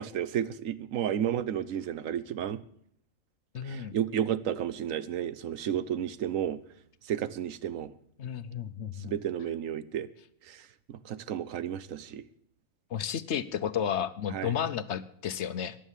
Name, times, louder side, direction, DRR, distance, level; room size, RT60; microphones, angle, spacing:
voice 1, 0.0-2.6 3.6-6.6 7.1-7.9 9.0-10.1 10.5-12.2 14.3-14.5, right 9 dB, 75° right, 16 dB, 1.2 m, -32 dB
voice 2, 3.5-3.9 8.2-9.1 12.9-15.8, left 8 dB, 60° left, 14 dB, 0.9 m, -32 dB
14.5 x 10.0 x 7.3 m, 0.66 s
omnidirectional pair, 1.4 m